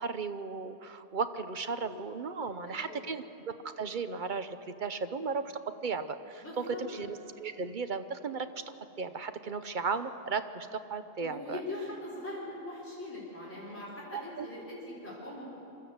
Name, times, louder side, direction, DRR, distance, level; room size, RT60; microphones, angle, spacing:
voice 1, 0.0-8.5 9.0-11.6 14.1-14.5, right 5 dB, 50° right, 10 dB, 0.9 m, -35 dB
voice 2, 2.7-3.0 6.4-7.0 11.2-15.4, left 1 dB, 10° left, -7 dB, 4.2 m, -41 dB
24.5 x 13.0 x 8.0 m, 2.9 s
omnidirectional pair, 1.1 m